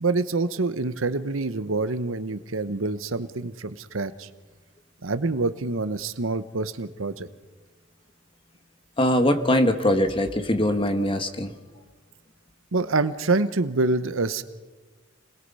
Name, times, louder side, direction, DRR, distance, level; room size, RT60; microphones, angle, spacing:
voice 1, 0.0-4.3 5.0-7.3 12.7-14.4, right 3 dB, 80° right, 12 dB, 1.0 m, -26 dB
voice 2, 9.0-11.5, left 1 dB, 25° left, 8 dB, 1.5 m, -22 dB
29.5 x 21.0 x 5.6 m, 1.3 s
head